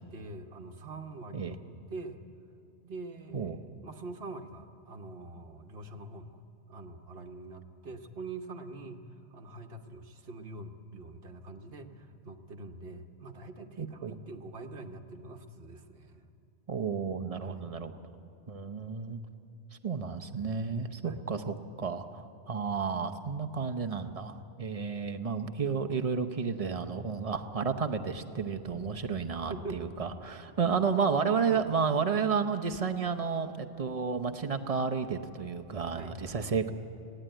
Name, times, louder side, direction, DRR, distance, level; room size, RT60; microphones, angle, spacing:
voice 1, 0.0-2.2 2.8-3.5 3.8-16.3 17.4-17.7 21.0-21.2 29.5-29.9 31.5-31.6 35.9-36.2 36.4-36.6, right 3 dB, 50° right, 5 dB, 1.2 m, -44 dB
voice 2, 13.8-14.1 16.7-17.9 18.5-19.2 19.8-36.7, right 5 dB, 35° right, 6 dB, 0.8 m, -32 dB
20.5 x 16.0 x 9.0 m, 2.8 s
omnidirectional pair, 1.3 m